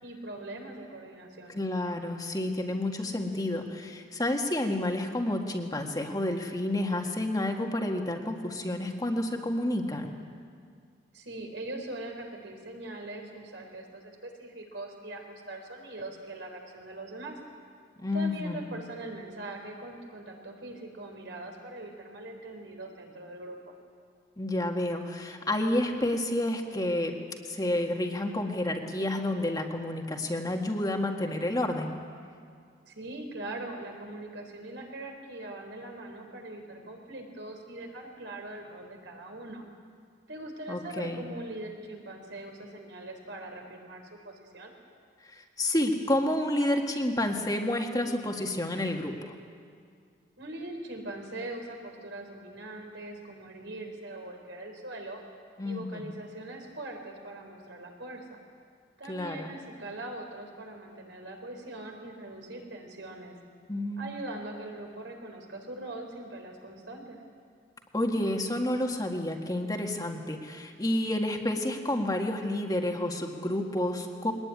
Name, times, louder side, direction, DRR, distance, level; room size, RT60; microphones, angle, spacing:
voice 1, 0.0-1.6 11.1-17.4 18.1-23.7 32.9-39.7 40.3-44.7 50.4-55.2 55.6-58.2 59.0-63.3 64.0-67.2, right 2 dB, 70° right, 2 dB, 4.2 m, -41 dB
voice 2, 1.5-10.2 18.0-18.6 24.4-32.0 40.7-41.2 45.3-49.3 55.6-56.1 59.1-59.5 63.7-64.1 67.9-74.3, left 1 dB, 20° left, 2 dB, 1.9 m, -30 dB
22.5 x 19.5 x 9.8 m, 2.1 s
head